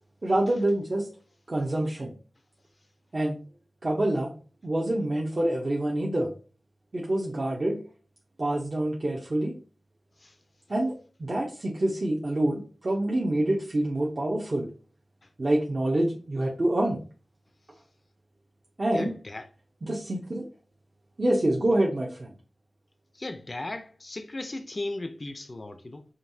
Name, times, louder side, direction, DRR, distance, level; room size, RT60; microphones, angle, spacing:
voice 1, 0.2-1.1 1.5-2.1 3.1-3.4 3.8-4.3 4.6-6.3 6.9-7.8 8.4-9.5 10.7-14.7 15.4-17.0 18.8-19.1 19.8-20.4 21.2-22.3, right 1 dB, 50° right, 0.7 m, -26 dB
voice 2, 18.9-19.5 23.1-26.1, left 2 dB, 40° left, 0.4 m, -36 dB
5.1 x 2.7 x 2.7 m
wide cardioid pair, 55°, 0 cm